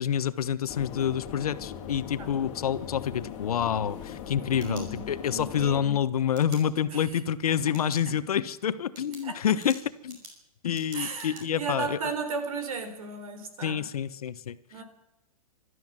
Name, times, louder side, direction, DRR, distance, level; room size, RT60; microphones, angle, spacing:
voice 1, 0.0-10.2 10.6-12.0 13.6-14.6, left 9 dB, 80° left, 14 dB, 1.2 m, -28 dB
sound 1, 0.7-5.8, left 8 dB, 30° left, 2.9 m, -40 dB
sound 2, 4.4-5.4 6.3-6.6 7.6-8.1 8.4-8.5 8.9-11.4, right 2 dB, 35° right, 5.7 m, -48 dB
voice 2, 4.4-6.0 6.9-7.0 7.7-7.8 8.1-8.2 9.2-9.4 10.9-13.8 14.7-14.8, right 4 dB, 70° right, 8 dB, 4.3 m, -35 dB
27.0 x 13.0 x 7.6 m, 0.85 s
hypercardioid pair, 170°, 19 cm